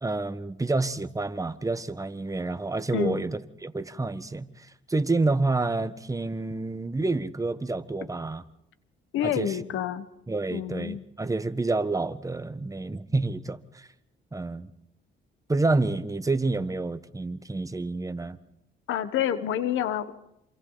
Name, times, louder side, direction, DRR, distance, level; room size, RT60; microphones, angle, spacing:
voice 1, 0.0-8.4 9.2-9.6 10.3-13.9 14.3-14.7 15.5-18.4, right 3 dB, 15° right, 1.3 m, -28 dB
voice 2, 2.9-3.2 9.1-10.1 10.5-11.0 18.9-20.1, left 10 dB, 85° left, 1.3 m, -28 dB
27.5 x 27.5 x 4.0 m
cardioid pair, 90°, 20 cm